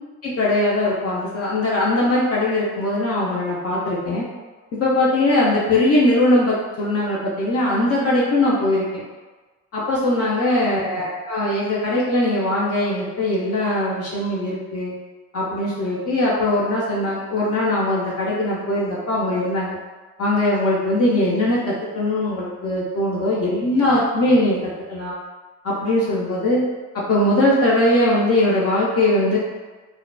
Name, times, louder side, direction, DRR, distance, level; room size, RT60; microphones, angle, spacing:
voice 1, 0.2-4.2 4.7-9.0 9.7-14.9 15.3-19.8 20.2-24.6 24.9-25.2 25.6-26.6 27.1-29.4, left 1 dB, 50° left, -6 dB, 0.6 m, -20 dB
2.7 x 2.1 x 2.2 m, 1.3 s
cardioid pair, 90°, 30 cm